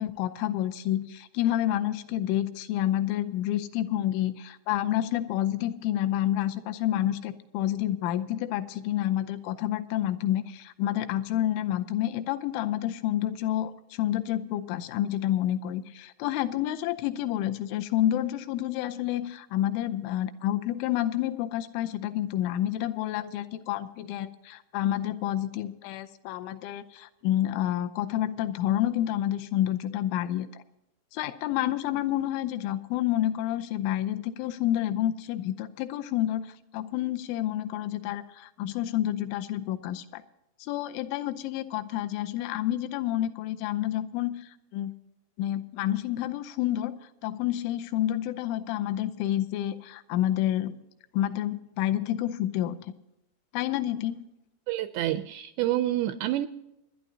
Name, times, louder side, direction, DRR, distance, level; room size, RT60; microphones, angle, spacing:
voice 1, 0.0-30.5 31.1-40.2 40.6-44.9 45.4-47.0 47.2-50.7 51.1-52.8 53.5-54.2, left 12 dB, 85° left, 10 dB, 3.2 m, -29 dB
voice 2, 54.7-56.5, right 13 dB, 85° right, 10 dB, 2.5 m, -28 dB
27.0 x 11.0 x 2.8 m, 0.90 s
omnidirectional pair, 5.4 m